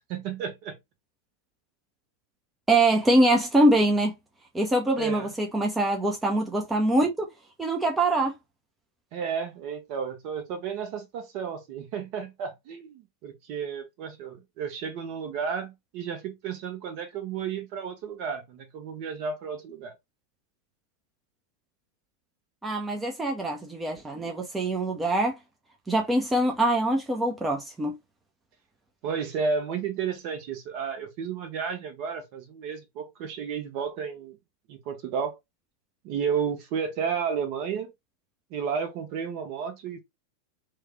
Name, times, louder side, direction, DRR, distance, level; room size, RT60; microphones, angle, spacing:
voice 1, 0.1-0.8 5.0-5.3 9.1-19.9 29.0-34.4 34.7-35.4 36.0-37.9 38.5-40.0, right 6 dB, 45° right, 0.9 m, -32 dB
voice 2, 2.7-4.1 4.5-7.3 7.6-8.3 22.6-25.3 25.9-27.9, right 1 dB, 10° right, 0.6 m, -24 dB
3.2 x 2.3 x 3.4 m
figure-of-eight pair, 90°, 0 cm